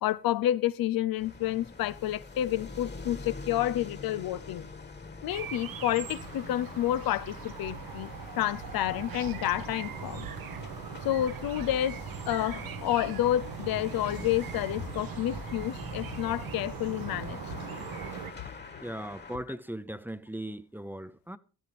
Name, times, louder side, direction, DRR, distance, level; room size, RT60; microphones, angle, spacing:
voice 1, 0.0-4.7 5.2-8.1 8.4-10.3 11.0-17.8 19.5-19.6, left 13 dB, 90° left, 0.6 m, -30 dB
sound 1, 1.2-19.4, left 3 dB, 30° left, 1.5 m, -44 dB
sound 2, 5.3-18.3, right 8 dB, 80° right, 1.2 m, -41 dB
voice 2, 18.8-21.4, right 1 dB, 5° right, 0.6 m, -38 dB
17.5 x 12.0 x 3.4 m
cardioid pair, 105°, 34 cm